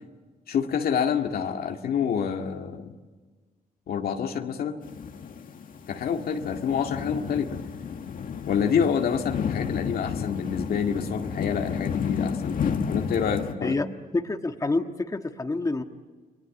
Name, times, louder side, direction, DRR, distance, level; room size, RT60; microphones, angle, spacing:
voice 1, 0.5-2.9 3.9-4.8 5.9-7.6 8.5-12.6 12.9-13.8, left 7 dB, 85° left, 4 dB, 2.0 m, -27 dB
sound 1, 4.8-13.5, left 6 dB, 65° left, 1.8 m, -32 dB
voice 2, 14.1-15.8, left 2 dB, 20° left, 6 dB, 1.5 m, -27 dB
30.0 x 22.5 x 8.4 m, 1.4 s
cardioid pair, 110°, 15 cm